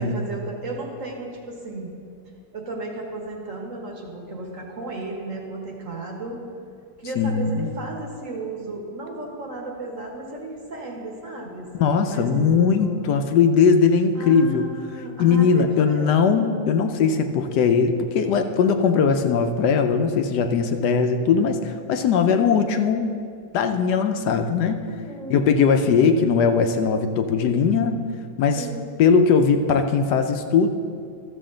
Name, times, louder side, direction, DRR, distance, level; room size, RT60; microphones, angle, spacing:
voice 1, 0.0-1.9 2.5-6.4 7.0-13.0 14.1-16.4 22.0-22.5 24.8-25.4 28.5-28.9, right 2 dB, 50° right, 0 dB, 1.5 m, -34 dB
voice 2, 7.2-7.7 11.7-14.7 15.2-23.1 23.5-24.8 25.3-28.0 28.4-28.6 29.0-30.7, left 6 dB, 75° left, 7 dB, 1.1 m, -19 dB
13.5 x 7.1 x 3.8 m, 2.3 s
omnidirectional pair, 1.9 m